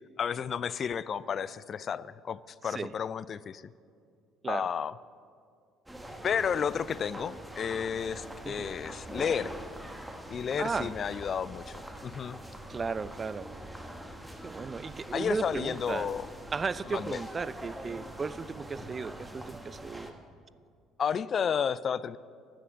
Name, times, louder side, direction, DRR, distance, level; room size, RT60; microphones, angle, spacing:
voice 1, 0.2-3.7 4.5-4.9 6.2-9.5 10.3-12.4 15.1-16.3 16.9-17.2 21.0-22.2, left 7 dB, 40° left, 19 dB, 0.4 m, -32 dB
sound 1, 5.9-20.1, right 1 dB, 5° right, 1.5 m, -44 dB
voice 2, 10.6-10.9 12.7-13.5 14.4-16.1 16.5-20.1, right 5 dB, 30° right, 18 dB, 0.4 m, -35 dB
15.5 x 10.0 x 7.2 m, 2.3 s
figure-of-eight pair, 55°, 0 cm